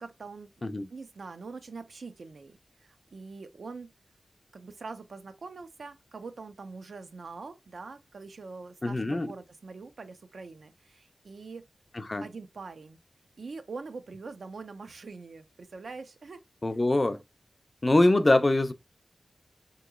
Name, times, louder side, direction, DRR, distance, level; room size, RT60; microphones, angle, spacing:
voice 1, 0.0-0.5 0.9-3.9 4.5-11.7 12.2-13.0 13.4-16.4 16.7-16.8, right 4 dB, 75° right, 0.5 m, -43 dB
voice 2, 8.8-9.3 12.0-12.3 16.6-17.2 17.8-18.7, left 2 dB, 30° left, 0.4 m, -23 dB
3.7 x 2.9 x 2.2 m
wide cardioid pair, 115°, 0 cm